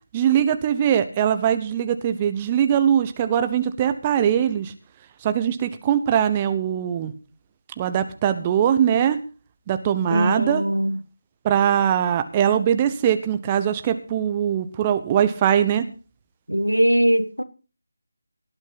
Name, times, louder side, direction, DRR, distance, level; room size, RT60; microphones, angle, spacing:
voice 1, 0.1-4.7 5.2-7.1 7.8-9.2 9.7-10.6 11.4-15.8, right 9 dB, 20° right, 1.0 m, -21 dB
voice 2, 10.1-11.0 16.5-17.4, equal, 85° right, 1.9 m, -20 dB
18.0 x 12.0 x 4.0 m
figure-of-eight pair, 160°, 0 cm